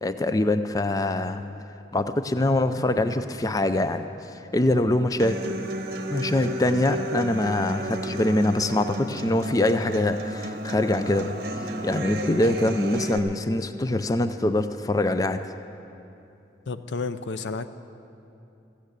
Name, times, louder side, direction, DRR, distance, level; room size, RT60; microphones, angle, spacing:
voice 1, 0.0-1.6 1.9-5.4 6.1-11.4 11.8-15.4, left 1 dB, 20° left, 10 dB, 0.4 m, -24 dB
Human voice / Acoustic guitar, 5.2-13.2, right 1 dB, 55° right, 1.0 m, -32 dB
voice 2, 16.7-17.7, left 4 dB, 85° left, 12 dB, 0.6 m, -31 dB
15.0 x 9.0 x 8.2 m, 2.8 s
head